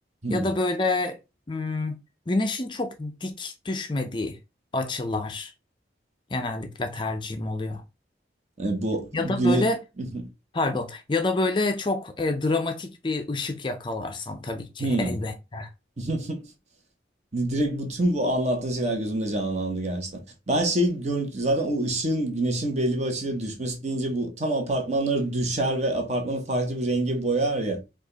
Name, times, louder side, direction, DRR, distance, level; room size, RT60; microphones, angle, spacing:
voice 1, 0.3-1.2 1.5-2.0 2.3-4.4 4.7-5.5 6.3-7.8 9.1-9.8 10.5-15.7, left 2 dB, 25° left, 0.4 m, -28 dB
voice 2, 8.6-9.7 10.0-10.1 14.8-15.2 16.0-16.4 17.3-20.2 20.5-27.8, right 1 dB, 40° right, 1.1 m, -26 dB
5.0 x 2.4 x 3.9 m
head